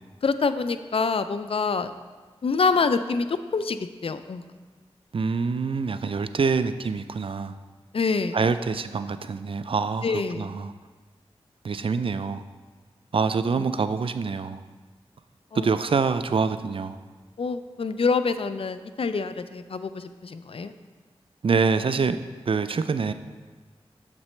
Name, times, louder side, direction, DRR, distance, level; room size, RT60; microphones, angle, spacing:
voice 1, 0.2-1.9 2.4-4.4 7.9-8.4 10.0-10.5 13.6-13.7 15.5-15.6 17.4-20.7, left 4 dB, 60° left, 11 dB, 0.4 m, -26 dB
voice 2, 5.1-7.6 8.3-10.7 11.6-12.4 13.1-14.6 15.5-17.0 21.4-23.1, right 5 dB, 55° right, 11 dB, 0.4 m, -25 dB
7.5 x 6.0 x 3.2 m, 1.4 s
cardioid pair, 45°, 11 cm